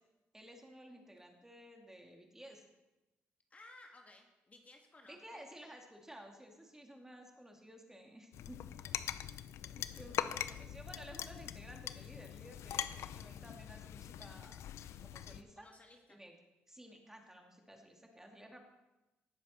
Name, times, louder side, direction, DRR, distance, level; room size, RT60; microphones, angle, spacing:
voice 1, 0.3-2.6 5.0-8.6 9.7-14.6 15.0-15.7 16.1-16.3 16.7-18.6, equal, 10° right, 2 dB, 2.4 m, -54 dB
voice 2, 3.5-5.4 9.8-9.9 15.6-16.2, left 2 dB, 30° left, 2 dB, 1.7 m, -59 dB
sound 1, 8.3-15.4, left 10 dB, 75° left, 0.5 m, -42 dB
18.0 x 7.3 x 4.4 m, 1.0 s
supercardioid pair, 70°, 5 cm